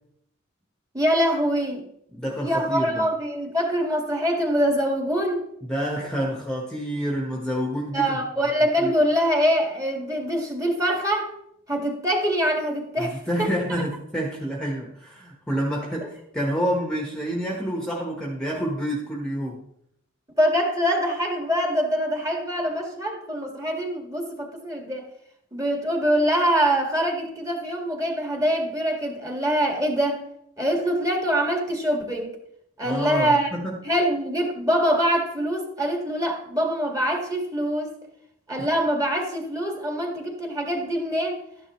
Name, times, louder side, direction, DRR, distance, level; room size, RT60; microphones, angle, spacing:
voice 1, 0.9-1.9 2.4-5.4 7.9-11.3 11.7-13.5 16.0-16.1 20.4-25.1 25.5-30.2 30.6-32.3 32.8-33.5 33.8-38.0 38.5-41.4, equal, 15° right, 2 dB, 1.9 m, -24 dB
voice 2, 2.1-3.1 5.6-8.2 8.8-8.9 13.0-19.6 32.8-33.8 38.6-38.7, equal, 5° left, 0 dB, 1.2 m, -28 dB
12.5 x 10.0 x 3.1 m, 0.74 s
head